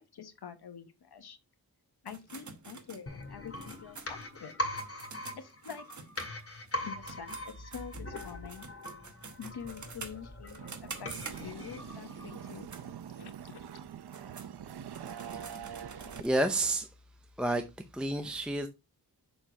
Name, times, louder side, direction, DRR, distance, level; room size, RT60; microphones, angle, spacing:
voice 1, 0.0-1.4 2.0-4.5 5.3-5.8 6.7-8.7 9.4-12.7 13.1-13.7, left 7 dB, 85° left, 1.3 m, -46 dB
sound 1, 2.1-6.8 7.0-11.8 12.4-12.9 13.3-13.4 13.9-16.3, right 4 dB, 50° right, 1.2 m, -48 dB
sound 2, 3.1-12.8 13.1-13.2, left 1 dB, 35° left, 2.1 m, -41 dB
sound 3, 10.6-16.2, right 9 dB, 85° right, 0.7 m, -44 dB
voice 2, 16.2-16.9 17.4-17.6 17.9-18.7, right 1 dB, 5° right, 0.6 m, -29 dB
6.8 x 4.4 x 4.4 m
wide cardioid pair, 140°, 38 cm